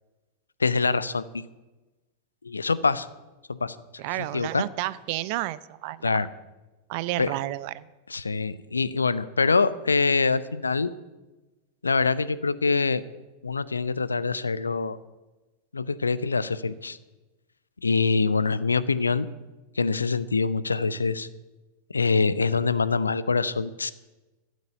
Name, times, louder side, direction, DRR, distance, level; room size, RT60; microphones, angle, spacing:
voice 1, 0.6-1.4 2.4-3.1 3.5-3.8 4.3-4.6 6.0-6.3 7.2-7.3 8.1-10.9 11.8-13.0 13.4-15.0 15.7-17.0 17.8-19.3 19.8-21.3 21.9-23.9, left 4 dB, 75° left, 16 dB, 0.6 m, -24 dB
voice 2, 4.0-6.2 6.9-7.9, right 17 dB, 45° right, 18 dB, 0.6 m, -31 dB
13.5 x 8.3 x 8.8 m, 1.1 s
figure-of-eight pair, 90°, 0 cm